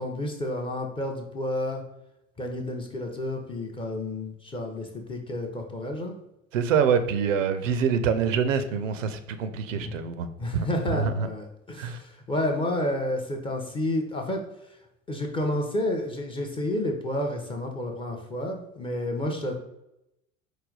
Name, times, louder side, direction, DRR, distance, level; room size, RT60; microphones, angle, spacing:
voice 1, 0.0-1.8 2.4-6.1 9.7-9.9 10.4-14.8 15.1-19.5, left 1 dB, 15° left, 2 dB, 0.5 m, -30 dB
voice 2, 6.5-11.3 11.8-12.0, right 6 dB, 65° right, 10 dB, 0.5 m, -26 dB
4.8 x 2.2 x 3.8 m, 0.86 s
figure-of-eight pair, 70°, 41 cm